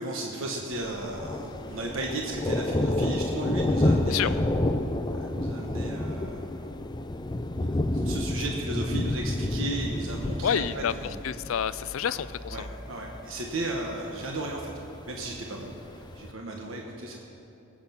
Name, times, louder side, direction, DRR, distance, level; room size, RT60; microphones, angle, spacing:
voice 1, 0.0-4.4 5.0-6.7 7.6-11.1 12.0-12.2 12.5-17.3, right 2 dB, 70° right, 0 dB, 1.3 m, -35 dB
Thunder, 0.7-16.3, left 1 dB, 20° left, 0.5 m, -30 dB
voice 2, 10.4-12.7, left 8 dB, 70° left, 15 dB, 0.4 m, -29 dB
19.5 x 8.7 x 5.9 m, 3.0 s
head